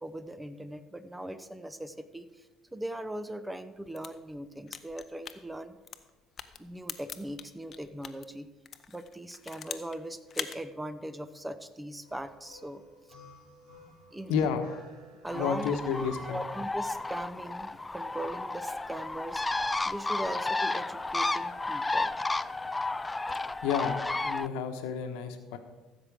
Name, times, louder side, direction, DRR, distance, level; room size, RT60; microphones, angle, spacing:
voice 1, 0.0-2.5 2.7-5.8 6.6-8.5 8.9-12.8 14.1-14.6 15.2-15.8 16.3-19.4 19.8-22.2, right 1 dB, 10° right, 11 dB, 0.9 m, -40 dB
sound 1, 3.8-8.2 8.7-10.0 10.3-10.6, left 7 dB, 45° left, 0.8 m, -41 dB
sound 2, 12.0-17.2, left 1 dB, 75° right, 4.1 m, -48 dB
voice 2, 14.3-14.6 15.3-16.4 23.6-25.6, left 7 dB, 65° left, 7 dB, 1.2 m, -31 dB
Bird, 15.3-24.5, left 2 dB, 15° left, 0.4 m, -32 dB
15.0 x 7.3 x 4.9 m, 1.1 s
figure-of-eight pair, 55°, 0 cm